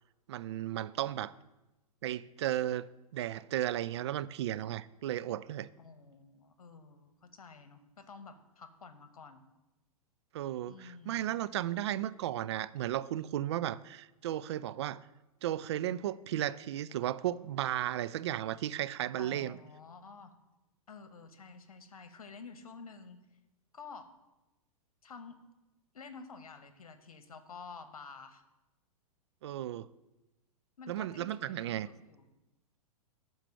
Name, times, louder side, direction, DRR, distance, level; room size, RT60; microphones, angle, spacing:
voice 1, 0.3-1.3 2.0-2.9 3.1-5.7 10.3-15.0 15.4-19.6 29.4-29.9 30.9-31.9, right 12 dB, 45° right, 0.4 m, -34 dB
voice 2, 5.8-9.4 10.6-11.3 19.2-20.3 20.9-23.2 23.7-24.1 25.0-25.4 25.9-28.4 30.8-32.3, left 5 dB, 70° left, 1.1 m, -50 dB
11.5 x 4.6 x 6.6 m
figure-of-eight pair, 105°, 19 cm